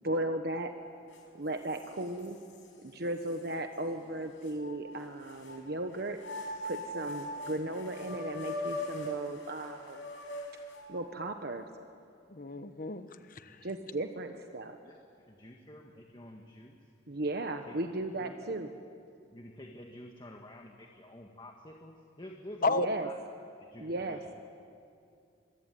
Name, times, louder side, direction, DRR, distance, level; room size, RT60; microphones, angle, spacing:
voice 1, 0.0-0.7 1.4-2.4 2.8-6.2 6.6-10.1 10.9-11.7 13.6-14.8 17.1-18.7 22.7-23.1 23.8-24.2, right 1 dB, 55° right, 6 dB, 1.2 m, -36 dB
sound 1, 1.1-1.2 1.7-2.6 3.3-3.4 4.4-5.6 6.2-11.1, left 1 dB, 75° left, 6.2 m, -40 dB
voice 2, 12.3-13.7 22.6-22.9, left 3 dB, 45° left, 10 dB, 1.2 m, -32 dB
voice 3, 15.3-16.8 17.7-18.4 19.3-23.1 23.6-24.2, left 1 dB, 25° left, 2 dB, 1.7 m, -49 dB
26.0 x 23.5 x 9.2 m, 2.4 s
head